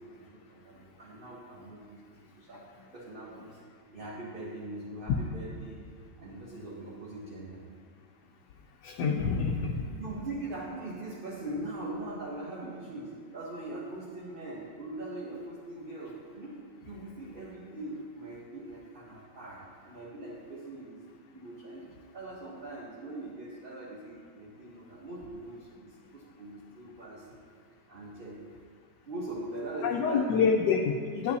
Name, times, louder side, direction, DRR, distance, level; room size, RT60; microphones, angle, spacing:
voice 1, 0.0-2.0 2.3-2.6 2.9-3.6 3.9-5.7 6.2-7.6 10.0-21.0 21.3-27.5 27.9-28.4 29.0-30.5, right 2 dB, 40° right, -5 dB, 1.0 m, -41 dB
voice 2, 8.8-9.8 29.8-31.4, left 5 dB, 85° left, 2 dB, 1.2 m, -27 dB
9.6 x 9.4 x 2.8 m, 2.1 s
omnidirectional pair, 1.8 m